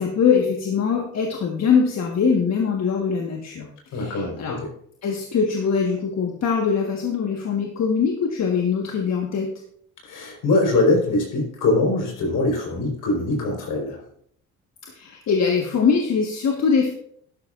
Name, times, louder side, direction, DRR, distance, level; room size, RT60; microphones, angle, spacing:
voice 1, 0.0-4.6 5.0-9.5 14.9-16.9, left 6 dB, 55° left, 1 dB, 1.5 m, -22 dB
voice 2, 3.9-4.7 10.0-14.0, left 2 dB, 75° left, 1 dB, 4.5 m, -22 dB
12.0 x 11.5 x 2.5 m, 0.65 s
cardioid pair, 90°, 32 cm